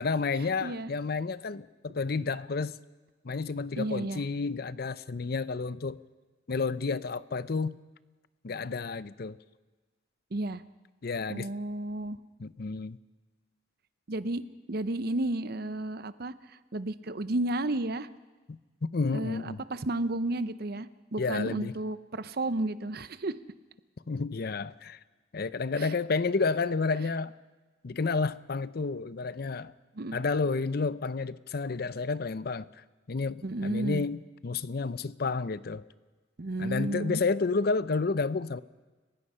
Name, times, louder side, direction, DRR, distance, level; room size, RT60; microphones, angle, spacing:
voice 1, 0.0-2.8 3.2-6.0 6.5-7.7 8.4-9.4 11.0-11.5 12.4-13.0 18.5-18.6 18.9-19.6 21.2-21.7 24.1-25.0 25.3-27.3 27.8-29.7 30.1-32.7 33.1-35.8 36.6-38.6, left 4 dB, 55° left, 17 dB, 0.6 m, -30 dB
voice 2, 3.8-4.2 10.3-10.6 11.3-12.2 14.1-14.4 14.7-18.1 19.1-23.3 25.8-25.9 30.0-30.2 33.4-34.0 36.4-37.2, right 2 dB, 55° right, 14 dB, 0.8 m, -32 dB
30.0 x 16.5 x 5.6 m, 1.3 s
head